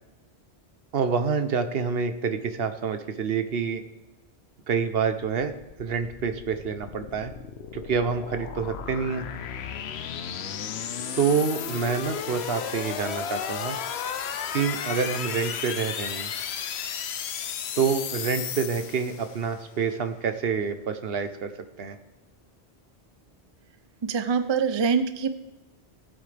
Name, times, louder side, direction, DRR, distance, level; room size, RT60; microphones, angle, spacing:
voice 1, 0.9-3.8 4.7-7.3 7.7-9.3 11.2-13.8 14.5-16.3 17.8-21.5 21.8-22.0, right 6 dB, 65° right, 9 dB, 1.0 m, -27 dB
sound 1, 5.2-19.6, left 8 dB, 75° left, 0.9 m, -34 dB
voice 2, 24.1-25.3, right 6 dB, 35° right, 10 dB, 0.4 m, -24 dB
17.5 x 7.9 x 3.4 m, 1.0 s
omnidirectional pair, 1.1 m